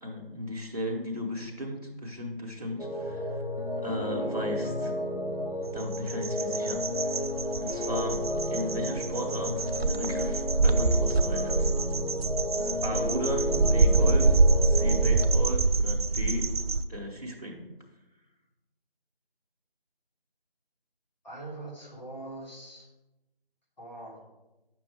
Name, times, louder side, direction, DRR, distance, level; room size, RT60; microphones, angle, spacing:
voice 1, 0.0-3.4 3.8-4.9 5.7-7.2 7.6-11.7 12.5-16.5 16.9-17.7, equal, 40° right, -3 dB, 1.2 m, -36 dB
sound 1, 2.8-15.3, left 1 dB, 70° left, 1.8 m, -32 dB
sound 2, 5.8-16.8, right 3 dB, 85° right, 0.6 m, -25 dB
voice 2, 21.2-22.9 23.8-24.2, right 2 dB, 45° left, -6 dB, 2.5 m, -42 dB
8.2 x 6.1 x 3.5 m, 1.0 s
figure-of-eight pair, 175°, 30 cm